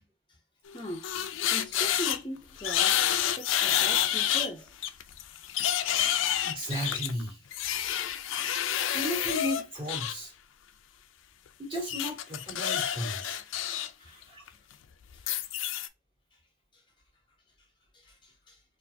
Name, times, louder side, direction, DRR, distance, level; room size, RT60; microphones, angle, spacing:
sound 1, 0.7-2.2 2.6-4.5 4.8-10.1 11.9-13.9 14.2-14.5 15.2-15.9, left 10 dB, 90° left, 0.4 m, -28 dB
voice 1, 0.7-1.2 1.5-3.1 3.4-4.7 14.0-14.1 14.4-14.6 15.1-15.4 16.3-16.4 16.7-16.8 17.9-18.6, equal, 25° left, 0.6 m, -40 dB
voice 2, 6.4-7.4 8.9-10.3 11.6-13.4 14.1-14.4, equal, 30° right, 2.1 m, -35 dB
4.4 x 2.4 x 2.6 m
head